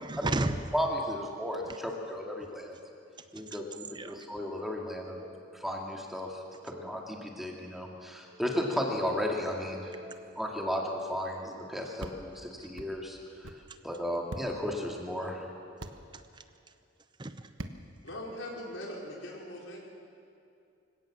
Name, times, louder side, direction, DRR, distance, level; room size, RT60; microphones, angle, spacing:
voice 1, 0.0-0.6 1.7-1.8 3.5-3.6 3.9-4.2 5.1-5.5 6.7-7.0 8.3-8.4 9.9-10.4 16.1-16.4 17.2-17.5, right 2 dB, 25° right, 10 dB, 0.7 m, -35 dB
voice 2, 0.7-2.7 3.3-5.2 5.5-9.9 10.4-13.5 13.8-15.4, equal, ahead, 0 dB, 2.2 m, -34 dB
sound 1, 12.0-12.2 12.8-12.9 13.4-13.6 14.3-14.5 15.8-16.0 17.6-17.8, right 2 dB, 85° right, 1.2 m, -40 dB
voice 3, 18.0-19.8, left 1 dB, 75° left, -2 dB, 5.0 m, -40 dB
24.5 x 17.0 x 7.5 m, 2.6 s
head